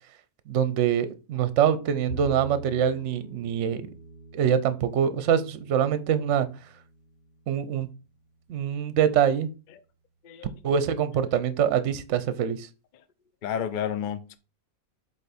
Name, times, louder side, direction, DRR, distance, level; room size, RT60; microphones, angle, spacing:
voice 1, 0.5-3.8 4.3-6.5 7.5-7.9 8.5-9.5 10.6-12.7, right 8 dB, 60° right, 0.9 m, -24 dB
Bowed string instrument, 2.1-8.4, right 3 dB, 35° left, 1.0 m, -44 dB
voice 2, 13.4-14.4, left 9 dB, 60° left, 0.5 m, -31 dB
8.0 x 3.6 x 4.1 m
omnidirectional pair, 1.6 m